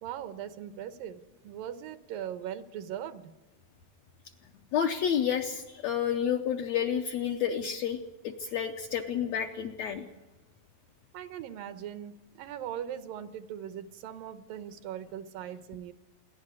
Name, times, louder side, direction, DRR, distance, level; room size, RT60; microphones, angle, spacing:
voice 1, 0.0-3.3 11.1-15.9, right 10 dB, 80° right, 11 dB, 2.6 m, -40 dB
voice 2, 4.7-8.0 8.2-10.1, left 8 dB, 70° left, 4 dB, 1.7 m, -30 dB
27.5 x 11.5 x 9.7 m, 1.1 s
omnidirectional pair, 4.0 m